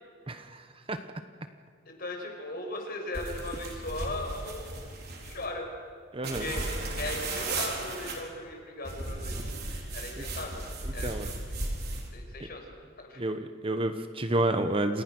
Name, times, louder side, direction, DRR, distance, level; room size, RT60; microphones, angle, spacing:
voice 1, 0.3-1.0 6.1-6.5 10.2-10.3 11.0-11.3 13.2-15.0, right 1 dB, 25° right, 9 dB, 1.0 m, -30 dB
voice 2, 1.9-4.9 5.2-5.7 6.2-9.5 9.9-10.6 10.9-11.3 12.1-12.7 13.0-13.2, left 2 dB, 50° left, 2 dB, 5.4 m, -38 dB
sound 1, 3.1-5.4 6.2-8.2 8.8-12.1, right 2 dB, 50° right, 4.4 m, -35 dB
29.0 x 27.5 x 6.2 m, 2.1 s
head